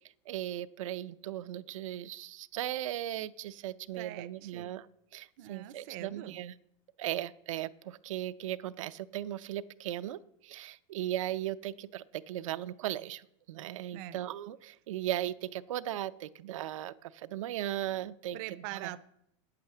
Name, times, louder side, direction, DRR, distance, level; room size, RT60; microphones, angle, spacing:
voice 1, 0.3-4.9 5.1-6.5 7.0-18.4 18.7-18.9, right 13 dB, 80° right, 0.6 m, -37 dB
voice 2, 4.0-4.8 5.4-6.4 13.9-14.2 18.3-19.0, right 14 dB, 35° right, 0.5 m, -43 dB
9.0 x 8.5 x 7.7 m
supercardioid pair, 175°, 16 cm